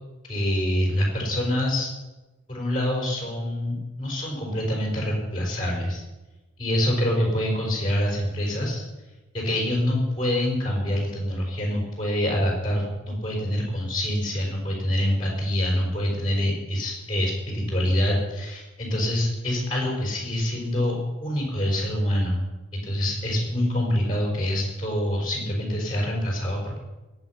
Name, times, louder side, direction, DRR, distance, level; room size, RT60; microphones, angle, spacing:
voice 1, 0.3-1.9 2.5-6.0 6.6-8.8 9.3-22.4 22.8-26.8, left 1 dB, 25° left, -1 dB, 4.6 m, -25 dB
21.5 x 8.8 x 5.8 m, 1.1 s
head